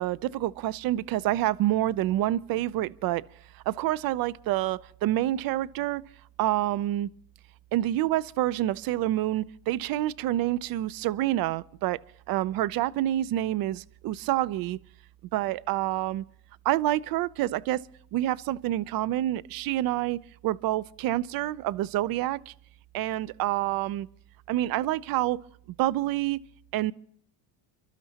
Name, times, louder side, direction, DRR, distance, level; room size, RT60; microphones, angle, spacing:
voice 1, 0.0-3.2 3.7-6.0 6.4-7.1 7.7-12.0 12.3-14.8 15.3-16.2 16.6-17.8 18.1-22.5 22.9-24.1 24.5-25.4 25.8-26.4 26.7-26.9, right 14 dB, 50° right, 0.6 m, -27 dB
29.0 x 12.5 x 2.8 m
supercardioid pair, 110°, 46 cm